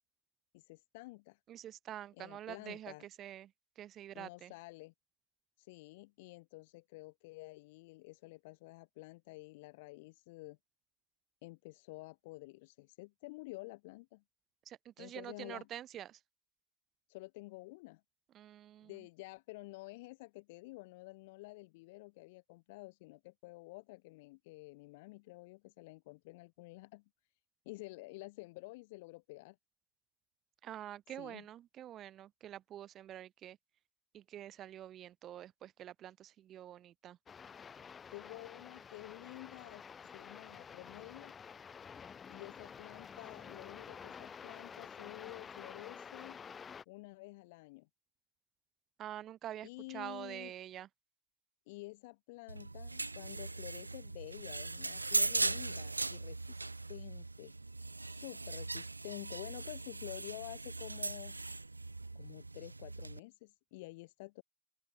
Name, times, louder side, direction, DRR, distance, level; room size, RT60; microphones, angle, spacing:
voice 1, 0.5-1.4 2.1-3.1 4.1-4.9 5.6-10.6 11.4-14.2 15.0-15.7 17.1-18.0 18.8-27.0 27.6-29.6 31.2-31.5 38.1-39.8 40.1-41.3 42.3-46.4 46.9-47.9 49.6-50.5 51.7-56.6 56.9-57.5 58.0-61.4 62.1-64.4, left 23 dB, 60° left, 4.8 m, -50 dB
voice 2, 1.5-3.5 3.8-4.5 14.7-16.2 18.3-18.9 30.6-33.6 34.1-37.2 49.0-50.9, right 11 dB, 35° right, 7.6 m, -47 dB
sound 1, 37.3-46.8, left 6 dB, 25° left, 6.0 m, -50 dB
sound 2, 52.5-63.2, right 3 dB, 90° right, 1.1 m, -39 dB
open air
figure-of-eight pair, 85°, 0 cm